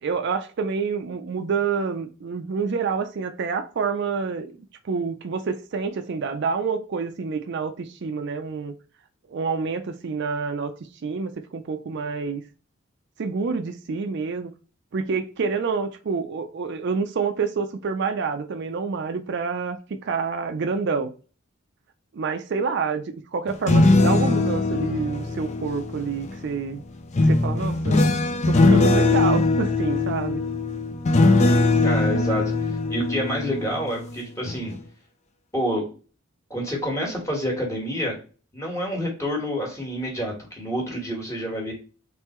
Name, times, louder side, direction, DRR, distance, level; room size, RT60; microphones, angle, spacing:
voice 1, 0.0-4.6 4.8-8.7 9.3-10.7 11.0-12.4 13.2-14.5 14.9-21.1 22.1-26.8 27.2-28.0 28.4-30.4, right 5 dB, 60° right, 0.4 m, -28 dB
sound 1, 23.5-26.4 27.1-34.1 34.4-34.8, left 2 dB, 35° left, 0.5 m, -21 dB
voice 2, 31.8-32.4 32.9-34.7 35.5-35.8 36.5-38.2 38.5-41.7, equal, 15° left, 1.4 m, -28 dB
3.6 x 3.3 x 3.0 m
head